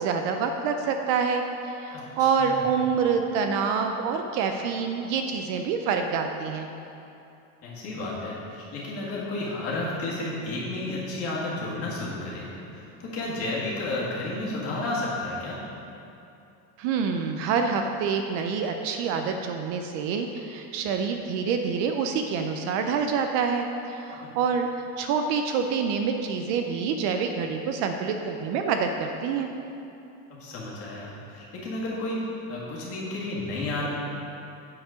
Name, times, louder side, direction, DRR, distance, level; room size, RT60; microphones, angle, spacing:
voice 1, 0.0-6.7 16.8-24.7 25.0-29.5, right 6 dB, 50° right, 5 dB, 0.5 m, -27 dB
voice 2, 7.6-15.5 30.4-32.2 32.5-33.9, left 2 dB, 35° left, -6 dB, 1.9 m, -32 dB
8.6 x 4.5 x 5.0 m, 2.7 s
cardioid pair, 160°, 38 cm